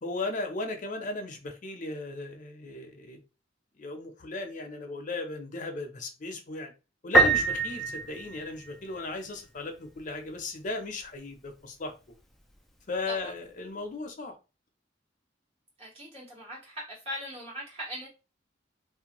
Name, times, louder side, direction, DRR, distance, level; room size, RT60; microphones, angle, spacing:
voice 1, 0.0-3.2 3.8-6.7 7.0-11.9 12.9-14.3, left 3 dB, 45° left, 0.6 m, -36 dB
Piano, 7.1-9.0, right 3 dB, ahead, 0.4 m, -24 dB
voice 2, 15.8-18.1, equal, 35° right, 1.4 m, -40 dB
2.5 x 2.1 x 2.9 m
head